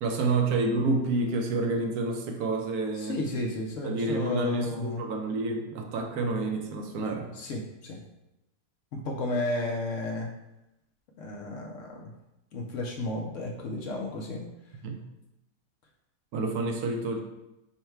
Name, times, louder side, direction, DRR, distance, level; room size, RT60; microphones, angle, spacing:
voice 1, 0.0-3.2 3.8-7.3 14.8-15.0 16.3-17.2, right 3 dB, 80° right, 3 dB, 1.1 m, -29 dB
voice 2, 2.9-5.0 7.3-8.0 8.9-10.3 11.2-12.1 12.5-14.4, left 2 dB, 65° left, -1 dB, 0.8 m, -33 dB
5.5 x 2.2 x 4.4 m, 0.91 s
omnidirectional pair, 1.7 m